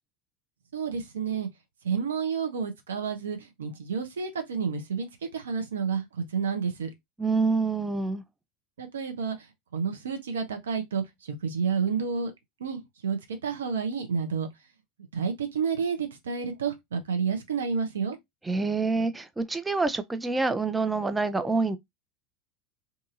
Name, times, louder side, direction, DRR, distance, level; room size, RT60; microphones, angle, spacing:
voice 1, 0.7-1.5 1.8-6.9 8.8-9.5 9.7-12.3 12.6-14.5 15.1-18.2, right 6 dB, 80° right, 0.7 m, -30 dB
voice 2, 7.2-8.2 18.4-21.8, right 3 dB, 15° right, 0.4 m, -26 dB
2.7 x 2.7 x 2.4 m
hypercardioid pair, 80°, 0 cm